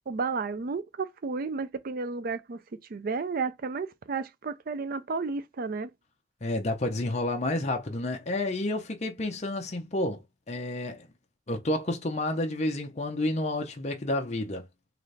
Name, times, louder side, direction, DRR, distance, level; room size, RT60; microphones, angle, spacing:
voice 1, 0.1-2.6 2.9-5.9, right 4 dB, 50° right, 0.4 m, -32 dB
voice 2, 6.4-11.1 11.5-14.7, left 1 dB, 40° left, 0.6 m, -30 dB
3.9 x 2.5 x 3.2 m
head